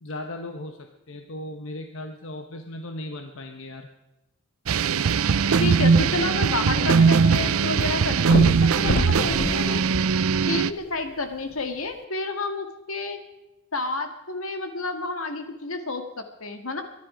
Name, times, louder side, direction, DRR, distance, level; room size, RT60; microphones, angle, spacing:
voice 1, 0.0-3.9, left 1 dB, 65° left, 5 dB, 1.1 m, -37 dB
sound 1, 4.7-10.7, right 5 dB, 85° right, 0.5 m, -20 dB
voice 2, 5.5-10.0 10.5-13.2 13.7-16.8, left 2 dB, 85° left, 6 dB, 2.0 m, -30 dB
sound 2, 6.0-7.5 7.7-7.8 8.2-10.8 11.5-11.6, left 3 dB, 45° left, 0.5 m, -29 dB
23.0 x 11.0 x 5.1 m, 0.96 s
head